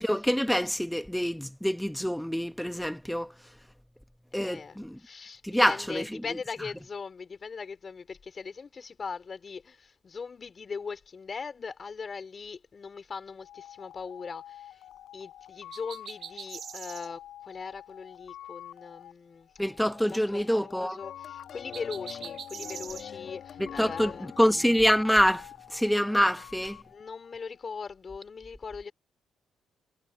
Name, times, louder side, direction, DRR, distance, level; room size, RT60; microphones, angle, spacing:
voice 1, 0.0-3.3 4.3-5.0 5.4-6.2 19.6-21.0 23.6-26.8, equal, ahead, 1.6 m, -26 dB
voice 2, 4.4-14.8 15.1-19.5 20.0-24.3 26.9-28.9, left 5 dB, 40° left, 3.9 m, -40 dB
sound 1, 13.4-27.9, left 12 dB, 80° left, 5.2 m, -49 dB
sound 2, 15.7-17.1 21.7-23.0, right 8 dB, 60° right, 2.9 m, -42 dB
sound 3, 21.0-25.4, left 8 dB, 65° left, 2.7 m, -44 dB
cardioid pair, 90°, 0 cm